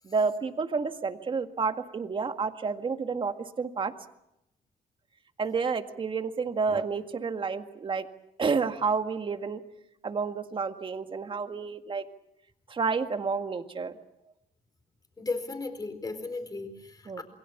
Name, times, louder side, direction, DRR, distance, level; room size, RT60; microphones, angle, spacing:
voice 1, 0.0-3.9 5.4-8.1 8.4-9.6 10.0-12.0 12.7-14.0 17.1-17.2, right 5 dB, 35° right, 7 dB, 1.8 m, -30 dB
voice 2, 15.2-17.2, left 3 dB, 25° left, 8 dB, 4.6 m, -35 dB
28.0 x 22.5 x 7.2 m, 0.84 s
cardioid pair, 115°, 15 cm